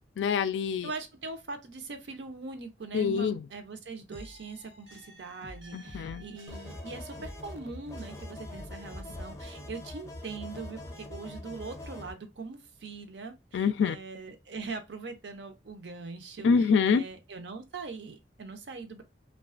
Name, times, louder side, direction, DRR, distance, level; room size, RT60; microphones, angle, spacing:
voice 1, 0.2-0.9 2.9-3.4 5.7-6.2 13.5-14.0 16.4-17.0, left 5 dB, 85° left, 0.3 m, -25 dB
voice 2, 0.8-16.5 16.8-19.0, right 4 dB, 75° right, 0.6 m, -41 dB
sound 1, 4.1-8.2 8.5-9.6, equal, 90° right, 1.2 m, -49 dB
sound 2, 6.5-12.1, left 1 dB, 15° left, 0.5 m, -43 dB
2.3 x 2.3 x 2.4 m
head